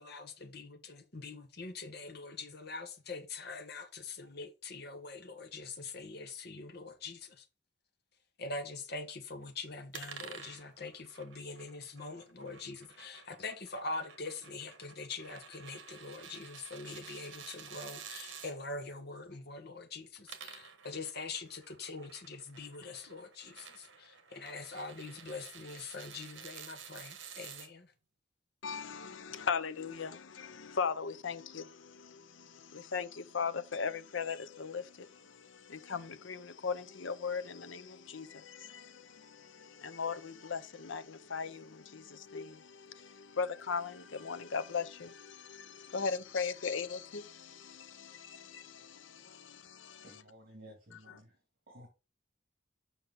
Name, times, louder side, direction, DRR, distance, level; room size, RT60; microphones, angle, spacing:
voice 1, 0.0-7.5 8.4-27.9, left 3 dB, 55° left, 1.3 m, -44 dB
sound 1, 9.9-18.5 20.0-27.7, right 7 dB, 70° right, 1.2 m, -51 dB
voice 2, 28.6-50.2 51.1-51.2, left 5 dB, 75° left, 0.7 m, -39 dB
voice 3, 50.0-51.3 51.7-51.9, equal, 50° right, 2.3 m, -54 dB
7.0 x 5.6 x 3.9 m
head